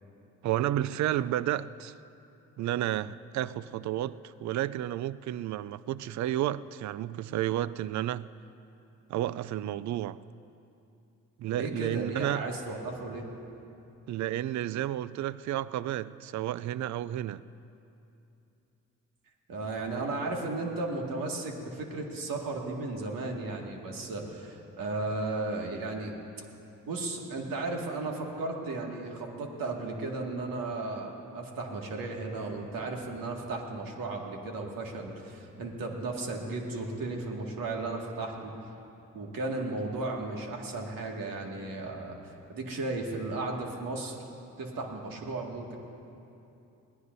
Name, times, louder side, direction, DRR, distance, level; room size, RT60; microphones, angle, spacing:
voice 1, 0.4-1.9 2.6-8.3 9.1-10.2 11.4-12.4 14.1-17.4, right 13 dB, 55° right, 0.4 m, -31 dB
voice 2, 11.5-13.3 19.5-26.2 26.9-38.5 39.1-44.2 44.6-45.8, right 2 dB, 70° right, 2.1 m, -35 dB
21.5 x 16.5 x 2.7 m
supercardioid pair, 50°, 35 cm